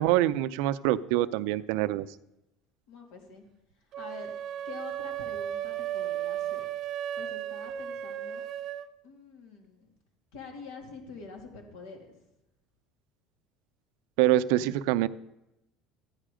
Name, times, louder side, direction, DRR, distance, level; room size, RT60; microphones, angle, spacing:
voice 1, 0.0-2.1 14.2-15.1, right 14 dB, 80° right, 13 dB, 0.5 m, -25 dB
voice 2, 2.9-3.4 4.0-4.3 4.6-6.7 7.1-8.5 9.0-9.9 10.3-12.1, left 4 dB, 80° left, 2 dB, 3.1 m, -46 dB
sound 1, 3.9-8.9, right 11 dB, 45° right, 0.8 m, -35 dB
14.0 x 10.0 x 5.0 m, 0.89 s
cardioid pair, 140°, 0 cm